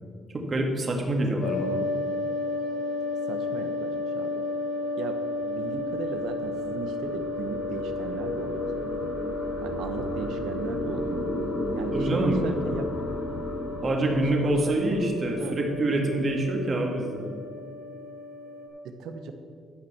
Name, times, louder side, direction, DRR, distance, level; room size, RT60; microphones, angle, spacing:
voice 1, 0.3-1.8 11.9-12.4 13.8-17.3, right 1 dB, 40° right, 1 dB, 2.0 m, -26 dB
sound 1, 1.4-18.7, left 2 dB, 90° left, 2.0 m, -33 dB
voice 2, 3.3-4.4 5.0-9.1 9.6-11.3 11.8-12.8 14.3-14.8 15.4-15.6 18.8-19.3, right 5 dB, 85° right, 8 dB, 1.0 m, -37 dB
sound 2, 5.2-15.6, left 1 dB, 60° left, 2.5 m, -34 dB
11.5 x 5.3 x 7.0 m, 2.1 s
cardioid pair, 90°, 0 cm